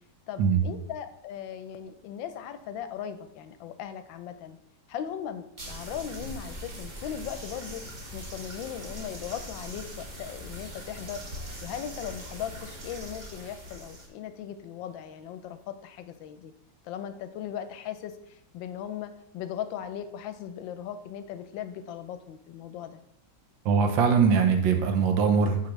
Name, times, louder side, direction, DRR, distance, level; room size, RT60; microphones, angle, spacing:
voice 1, 0.3-4.6 4.9-7.8 8.1-11.2 11.6-16.5 16.8-23.0, left 9 dB, 85° left, 10 dB, 1.3 m, -38 dB
sound 1, 5.6-14.1, equal, 35° right, 0.8 m, -41 dB
voice 2, 23.6-25.7, right 6 dB, 85° right, 6 dB, 1.6 m, -22 dB
8.5 x 4.8 x 3.1 m, 0.75 s
omnidirectional pair, 2.0 m